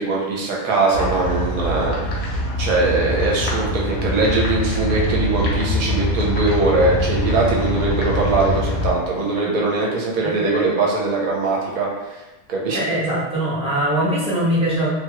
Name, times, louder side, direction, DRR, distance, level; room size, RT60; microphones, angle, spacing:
voice 1, 0.0-1.9 2.2-2.3 2.6-11.9 12.5-12.8, right 3 dB, 70° right, -3 dB, 1.1 m, -21 dB
sound 1, 0.9-8.9, equal, 70° left, 1.1 m, -23 dB
voice 2, 12.7-14.9, right 1 dB, 5° right, -10 dB, 0.8 m, -21 dB
3.0 x 2.3 x 2.9 m, 1.1 s
omnidirectional pair, 1.7 m